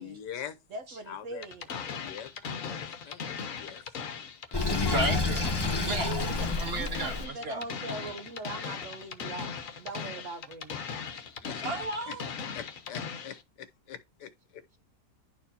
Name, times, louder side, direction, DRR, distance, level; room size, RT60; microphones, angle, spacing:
voice 1, 0.0-0.6 1.1-3.8 11.4-11.6 12.1-12.2 12.5-14.6, left 9 dB, 85° left, 1.5 m, -44 dB
voice 2, 0.7-1.7 6.0-10.7, right 3 dB, 60° right, 0.9 m, -41 dB
sound 1, 1.4-13.4, left 6 dB, 60° left, 1.2 m, -38 dB
Sink (filling or washing), 4.5-7.3, left 3 dB, 15° left, 1.0 m, -29 dB
voice 3, 4.9-5.5 5.8-6.2 6.6-7.6 11.6-12.3, right 2 dB, 40° right, 1.6 m, -33 dB
11.0 x 4.4 x 2.7 m
omnidirectional pair, 1.8 m